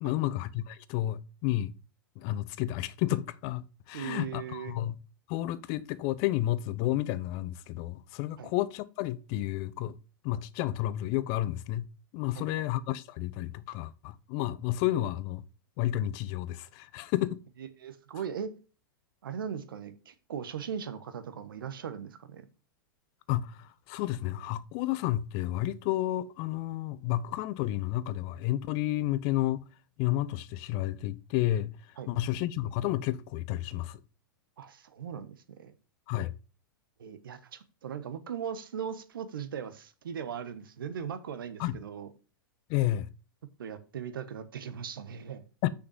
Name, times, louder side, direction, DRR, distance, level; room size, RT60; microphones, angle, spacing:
voice 1, 0.0-1.7 2.2-4.9 5.3-10.0 10.2-11.8 12.1-15.4 15.8-17.4 23.3-29.6 30.0-31.7 32.1-34.0 36.1-36.3 41.6-41.8 42.7-43.1 45.6-45.7, left 14 dB, 45° left, 0.6 m, -31 dB
voice 2, 3.9-4.8 8.4-8.5 12.3-12.6 17.6-18.5 19.2-22.4 32.0-32.1 34.6-35.7 37.0-42.1 43.6-45.4, right 8 dB, 70° right, 1.2 m, -39 dB
6.3 x 5.9 x 5.5 m
figure-of-eight pair, 100°, 12 cm